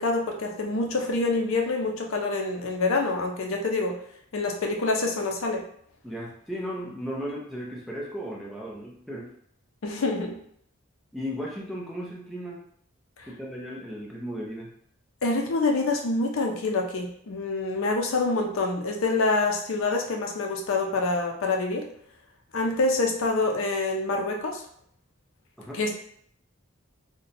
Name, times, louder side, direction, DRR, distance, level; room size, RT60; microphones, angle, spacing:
voice 1, 0.0-4.0 4.3-5.6 9.8-10.4 15.2-21.9 22.5-24.6 25.7-25.9, left 3 dB, 70° left, 2 dB, 0.5 m, -26 dB
voice 2, 6.0-9.3 11.1-12.6 13.3-14.7 25.6-25.8, equal, ahead, -4 dB, 0.5 m, -35 dB
2.7 x 2.1 x 3.9 m, 0.65 s
head